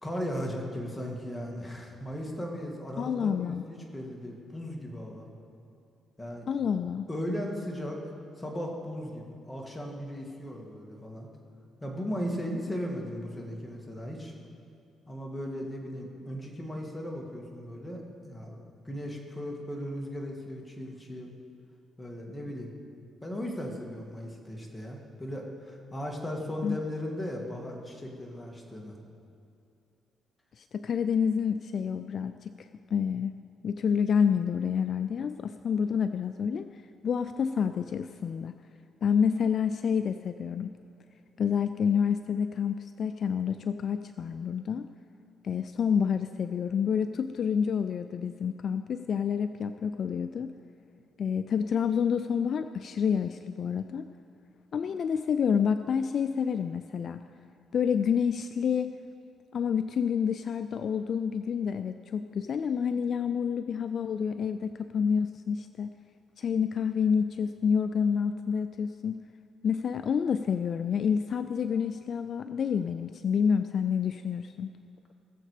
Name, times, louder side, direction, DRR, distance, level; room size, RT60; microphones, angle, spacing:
voice 1, 0.0-5.3 6.2-6.5 7.1-8.0 8.4-11.3 11.8-14.3 15.1-18.6 18.9-21.3 22.0-22.7 23.2-29.0, equal, 15° left, 0 dB, 2.2 m, -37 dB
voice 2, 3.0-3.6 6.5-7.1 26.6-26.8 30.6-33.3 33.6-38.5 39.0-40.7 41.4-44.9 45.4-50.5 51.2-54.1 54.7-57.2 57.7-58.9 59.5-65.9 66.4-69.2 69.6-74.7, left 7 dB, 55° left, 10 dB, 0.4 m, -28 dB
19.0 x 7.5 x 5.0 m, 2.6 s
cardioid pair, 90°, 0 cm